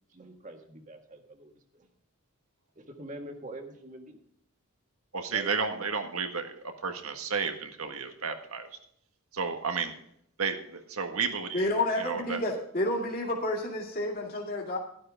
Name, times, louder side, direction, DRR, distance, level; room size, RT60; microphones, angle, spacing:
voice 1, 0.1-1.9 2.8-4.2 5.3-5.5, right 1 dB, 35° right, 4 dB, 1.8 m, -45 dB
voice 2, 5.1-8.7 9.3-10.0 10.4-11.7 12.0-12.4, right 5 dB, 75° right, 6 dB, 1.6 m, -32 dB
voice 3, 11.5-14.8, left 1 dB, 40° left, -2 dB, 2.5 m, -30 dB
12.5 x 12.5 x 3.7 m, 0.68 s
head